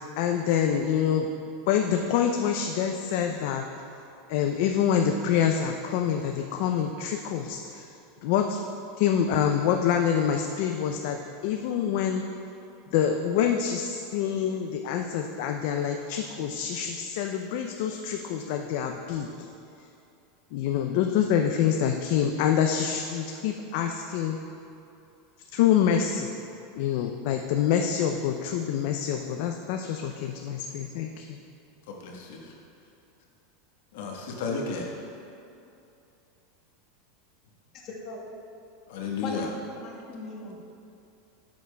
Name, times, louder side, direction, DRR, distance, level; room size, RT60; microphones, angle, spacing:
voice 1, 0.2-1.3 1.7-3.6 4.3-7.8 8.2-8.6 9.0-12.2 12.9-19.3 20.5-24.4 25.5-26.3 26.8-31.4, left 8 dB, 60° left, 4 dB, 0.4 m, -26 dB
voice 2, 31.9-32.5 33.9-34.9 38.9-39.5, left 4 dB, 75° left, -1 dB, 1.1 m, -33 dB
voice 3, 37.8-38.2 39.2-40.6, left 3 dB, 45° left, -3 dB, 1.3 m, -38 dB
9.2 x 7.2 x 2.2 m, 2.7 s
supercardioid pair, 140°, 0 cm